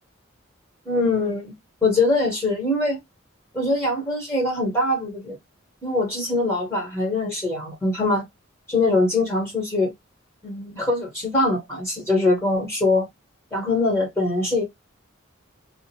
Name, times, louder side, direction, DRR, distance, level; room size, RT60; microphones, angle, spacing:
voice 1, 0.8-1.5 1.8-3.0 3.5-5.4 5.8-8.2 8.7-9.9 10.4-13.1 13.5-14.6, left 2 dB, 10° left, 1.1 m, -22 dB
2.4 x 2.1 x 2.8 m
head